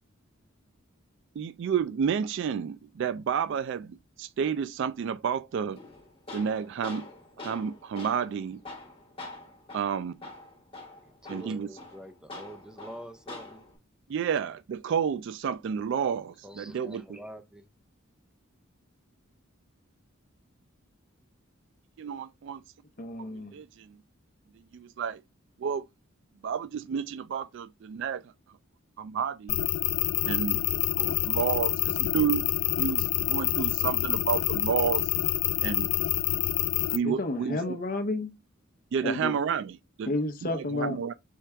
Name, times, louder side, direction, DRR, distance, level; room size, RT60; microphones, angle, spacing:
voice 1, 1.4-5.8 6.3-7.1 7.4-8.6 9.7-10.1 11.3-11.7 14.1-17.2 22.0-22.6 23.5-23.9 24.7-25.2 25.6-25.8 26.4-28.2 29.0-29.6 30.3-30.6 31.0-32.4 32.8-35.1 35.6-35.9 36.9-37.8 38.9-40.1 40.4-41.1, right 7 dB, 60° right, 0.3 m, -30 dB
Tools, 5.8-13.8, left 2 dB, 25° left, 1.7 m, -45 dB
voice 2, 11.0-13.6 16.4-17.7, equal, 5° right, 0.6 m, -46 dB
voice 3, 23.0-23.6 37.0-38.3 39.0-39.3 40.0-41.0, left 2 dB, 45° left, 0.7 m, -31 dB
sound 1, 29.5-37.0, left 15 dB, 70° left, 0.3 m, -27 dB
4.6 x 3.3 x 3.4 m
head